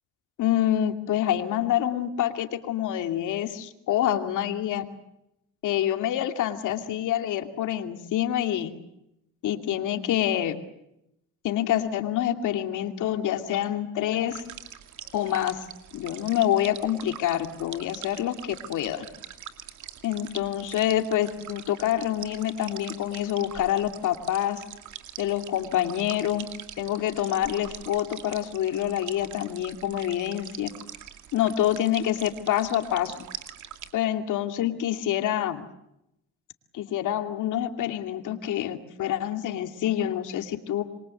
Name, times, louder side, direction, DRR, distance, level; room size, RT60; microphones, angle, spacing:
voice 1, 0.4-4.8 5.6-8.7 9.4-10.6 11.4-14.4 15.1-15.6 15.9-19.0 20.0-24.6 25.2-26.5 26.8-30.7 31.3-33.2 33.9-35.7 36.7-40.8, left 11 dB, 85° left, 7 dB, 2.6 m, -27 dB
sound 1, 14.3-33.9, right 10 dB, 75° right, 2.4 m, -44 dB
27.5 x 23.0 x 7.8 m, 0.83 s
cardioid pair, 90°, 30 cm